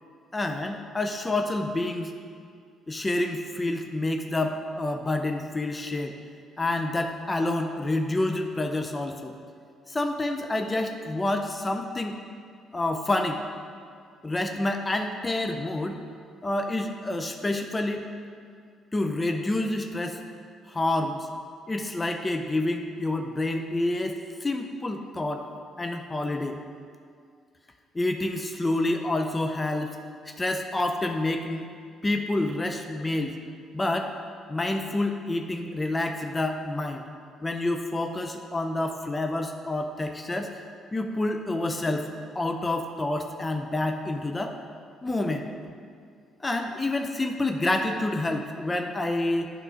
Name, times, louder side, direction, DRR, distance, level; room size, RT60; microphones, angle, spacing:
voice 1, 0.3-2.1 2.9-6.2 6.6-9.3 9.9-12.2 12.7-13.4 14.2-16.0 16.4-18.1 18.9-20.2 20.7-21.3 21.7-25.5 25.8-26.6 27.9-30.0 30.3-31.7 32.0-33.3 33.7-34.1 34.5-37.0 37.4-40.5 40.9-42.1 42.3-44.6 45.0-45.5 46.4-49.5, left 2 dB, 25° left, 5 dB, 0.5 m, -28 dB
8.2 x 3.7 x 5.1 m, 2.2 s
supercardioid pair, 60°, 0 cm